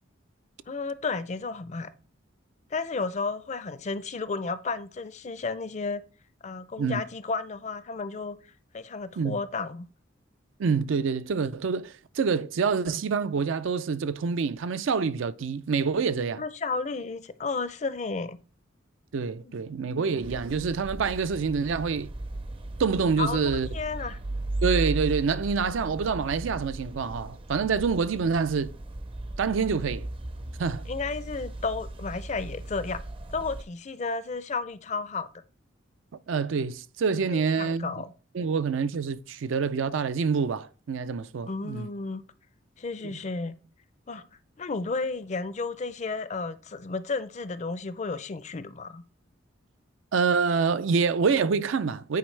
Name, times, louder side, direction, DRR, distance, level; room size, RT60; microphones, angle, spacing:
voice 1, 0.7-1.9 2.7-6.0 6.4-8.4 8.7-9.9 16.4-18.4 19.4-19.6 23.2-24.2 30.9-33.0 33.3-35.3 37.3-38.1 41.5-42.2 42.8-43.5 44.1-44.2 44.6-49.0, left 4 dB, 35° left, 0.4 m, -32 dB
voice 2, 10.6-16.4 19.1-22.1 22.8-23.7 24.6-28.7 29.4-30.1 30.6-30.8 36.3-37.9 38.3-41.9 43.0-43.2 50.1-52.2, right 5 dB, 80° right, 0.4 m, -26 dB
sound 1, 20.2-33.6, right 2 dB, 30° right, 0.5 m, -36 dB
9.3 x 4.4 x 3.2 m
head